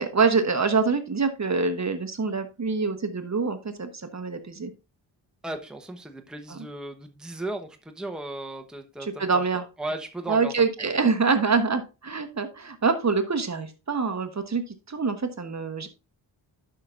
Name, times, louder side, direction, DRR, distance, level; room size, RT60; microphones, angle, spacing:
voice 1, 0.0-4.7 6.5-6.6 9.0-9.6 10.3-15.9, right 4 dB, 35° right, 8 dB, 1.1 m, -25 dB
voice 2, 5.4-9.4 9.8-10.5 10.8-10.9, right 1 dB, ahead, 5 dB, 1.0 m, -36 dB
11.5 x 5.8 x 2.5 m, 0.28 s
cardioid pair, 80°, 45 cm